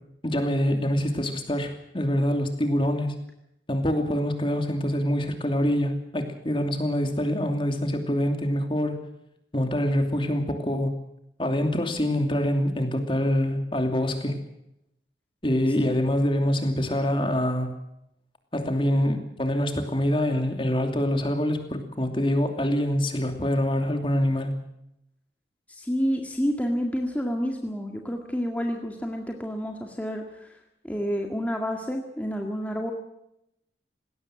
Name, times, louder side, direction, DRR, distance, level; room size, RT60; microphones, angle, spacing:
voice 1, 0.2-3.1 3.7-9.0 9.5-10.9 11.4-14.4 15.4-17.7 18.5-24.5, equal, 30° left, 6 dB, 2.8 m, -25 dB
voice 2, 25.7-30.5 30.8-32.9, equal, 10° left, 2 dB, 1.9 m, -29 dB
20.0 x 17.5 x 7.6 m, 0.81 s
head